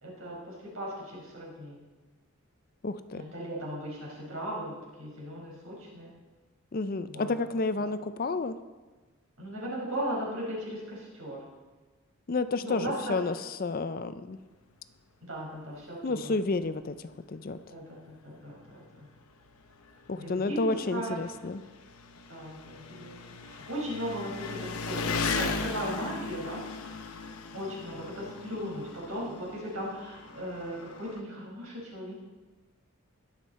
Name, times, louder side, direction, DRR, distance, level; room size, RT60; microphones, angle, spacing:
voice 1, 0.0-1.8 3.1-6.1 7.1-7.4 9.4-11.4 12.6-13.1 15.2-16.3 17.7-19.1 20.2-20.6 20.9-21.2 22.3-23.1 23.5-26.8 27.5-32.1, equal, 80° right, -4 dB, 4.8 m, -37 dB
voice 2, 2.8-3.2 6.7-8.6 12.3-14.4 16.0-17.6 20.1-21.6, left 3 dB, 40° left, 12 dB, 0.4 m, -31 dB
Engine, 16.6-16.7 17.1-17.2 18.2-18.3 18.5-31.2, left 4 dB, 90° left, 0.9 m, -38 dB
20.5 x 7.4 x 4.2 m, 1.3 s
head